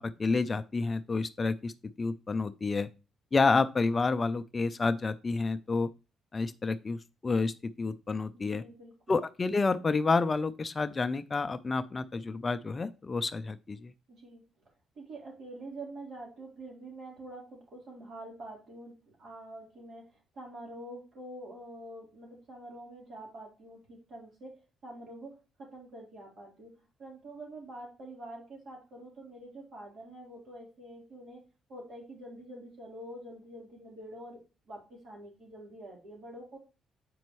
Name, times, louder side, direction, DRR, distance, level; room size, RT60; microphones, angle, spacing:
voice 1, 0.0-1.7 2.0-2.9 3.3-5.9 6.3-8.6 9.1-13.9, left 4 dB, 30° left, 11 dB, 0.4 m, -29 dB
voice 2, 8.3-9.2 14.1-14.4 15.0-26.7 27.0-31.4 31.7-36.6, right 1 dB, 60° right, -1 dB, 3.7 m, -46 dB
7.7 x 5.2 x 3.0 m, 0.31 s
cardioid pair, 90°, 0 cm